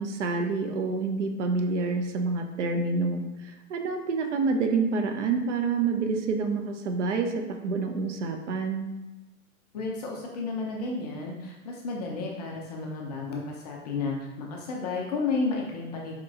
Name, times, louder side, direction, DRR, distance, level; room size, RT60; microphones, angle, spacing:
voice 1, 0.0-8.9, right 4 dB, 55° right, 5 dB, 0.5 m, -28 dB
voice 2, 9.7-16.1, left 3 dB, 30° left, -1 dB, 0.4 m, -32 dB
4.3 x 2.9 x 2.4 m, 1.0 s
figure-of-eight pair, 100°, 44 cm